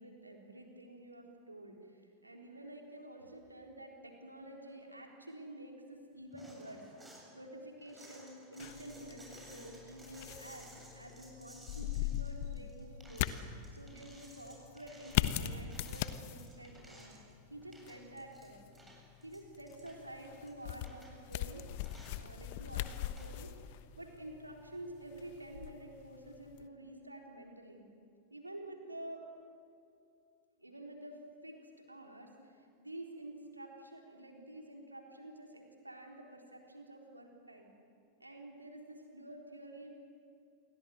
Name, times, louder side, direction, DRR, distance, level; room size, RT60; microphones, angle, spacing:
voice 1, 0.0-6.8 7.3-10.7 10.9-13.3 13.7-17.2 17.5-18.6 19.2-21.7 22.2-23.5 24.0-27.9 28.3-29.2 30.6-37.7 38.2-39.9, right 1 dB, 85° right, 1 dB, 3.9 m, -50 dB
sound 1, 6.3-7.3 7.8-17.3 17.6-18.5 18.7-20.0 20.5-20.6 20.8-21.4 21.8-22.2 22.8-23.3, right 1 dB, 10° right, 8.0 m, -57 dB
sound 2, 8.6-26.7, left 13 dB, 50° left, 1.1 m, -41 dB
28.5 x 23.5 x 7.9 m, 2.5 s
figure-of-eight pair, 90°, 0 cm